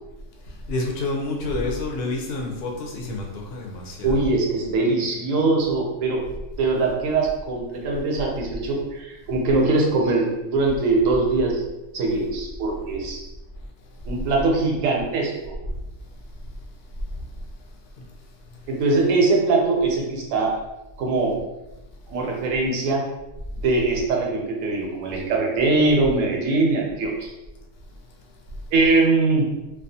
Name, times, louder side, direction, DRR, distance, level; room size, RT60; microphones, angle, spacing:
voice 1, 0.7-4.2, left 2 dB, 65° left, 1 dB, 0.7 m, -28 dB
voice 2, 4.0-6.2 6.6-11.6 11.9-13.2 14.0-15.6 18.7-20.6 21.0-21.4 22.1-23.0 23.6-27.3 28.7-29.5, right 3 dB, 80° right, 0 dB, 1.0 m, -22 dB
2.3 x 2.2 x 2.7 m, 1.0 s
omnidirectional pair, 1.3 m